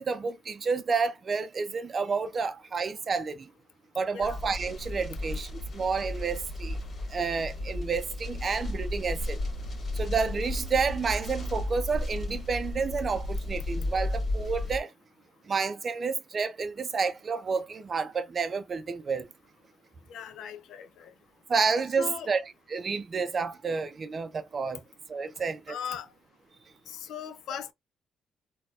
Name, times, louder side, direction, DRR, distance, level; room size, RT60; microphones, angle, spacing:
voice 1, 0.0-3.5 3.9-6.8 7.1-9.4 9.9-14.9 15.5-19.3 21.5-24.8 25.1-25.8, right 5 dB, 40° right, 0.5 m, -30 dB
sound 1, 4.2-14.8, left 1 dB, 50° left, 1.5 m, -34 dB
voice 2, 20.1-21.1 22.0-22.3 25.7-26.1 26.9-27.7, left 8 dB, 80° left, 0.5 m, -38 dB
4.0 x 2.3 x 2.3 m
cardioid pair, 90°, 0 cm